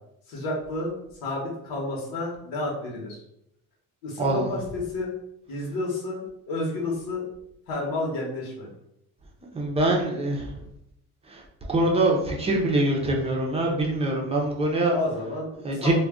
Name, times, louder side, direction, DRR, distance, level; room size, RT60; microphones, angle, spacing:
voice 1, 0.3-3.2 4.0-5.1 5.5-7.2 7.7-8.7 14.9-15.9, left 2 dB, 70° left, -3 dB, 1.1 m, -31 dB
voice 2, 9.5-10.5 11.7-14.9 15.6-15.9, right 2 dB, 20° right, -1 dB, 0.6 m, -24 dB
2.3 x 2.2 x 3.5 m, 0.78 s
cardioid pair, 125°, 35 cm